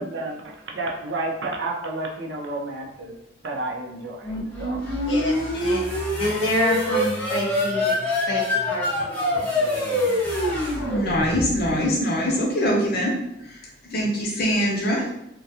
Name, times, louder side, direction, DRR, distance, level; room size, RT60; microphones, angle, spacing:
voice 1, 0.0-3.1 3.4-4.3 4.6-4.8, right 2 dB, 65° right, 0 dB, 0.5 m, -31 dB
sound 1, 4.2-11.9, left 1 dB, 10° left, 0.6 m, -25 dB
voice 2, 5.1-5.8 6.2-7.9 8.3-8.4 8.7-10.0, left 1 dB, 75° left, -4 dB, 1.0 m, -28 dB
voice 3, 10.9-13.1 13.9-15.0, equal, 55° left, -2 dB, 0.7 m, -23 dB
2.3 x 2.2 x 2.7 m, 0.83 s
head